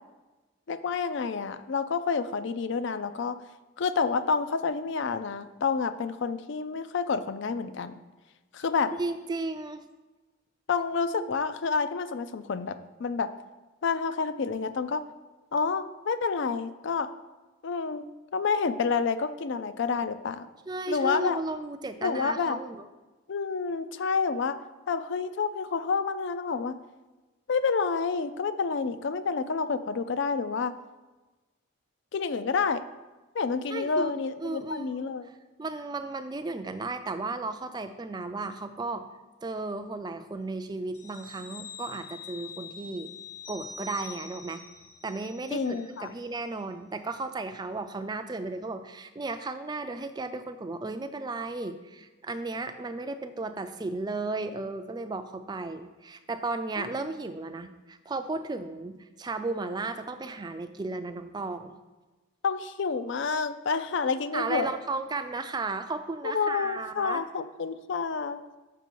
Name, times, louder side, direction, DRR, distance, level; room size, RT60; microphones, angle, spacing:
voice 1, 0.7-3.4 3.8-8.0 8.5-8.9 10.7-13.3 13.8-15.0 15.5-17.1 17.6-18.0 18.3-20.5 20.9-21.4 22.0-22.6 23.3-24.6 24.9-26.8 27.5-30.8 32.1-32.8 33.3-35.3 45.5-46.1 56.8-56.9 62.4-64.7 66.2-68.4, left 5 dB, 55° left, 12 dB, 0.4 m, -29 dB
voice 2, 9.0-9.8 20.7-22.9 33.7-34.1 34.4-35.3 35.6-39.0 39.4-43.1 43.5-44.6 45.0-61.7 64.3-67.2, right 3 dB, 20° right, 9 dB, 0.4 m, -34 dB
sound 1, 40.9-46.0 46.4-46.5, left 5 dB, 80° left, 1.6 m, -45 dB
6.9 x 5.9 x 4.6 m, 1.2 s
head